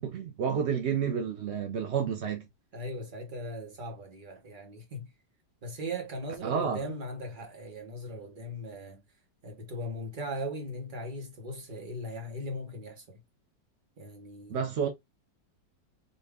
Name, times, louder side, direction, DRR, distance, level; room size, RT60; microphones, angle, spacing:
voice 1, 0.0-2.4 6.4-6.8 14.5-14.9, right 7 dB, 70° right, 0.6 m, -30 dB
voice 2, 2.7-5.1 5.6-9.0 9.4-13.2 14.0-14.7, equal, 30° right, 1.1 m, -39 dB
4.4 x 2.6 x 3.4 m
omnidirectional pair, 2.0 m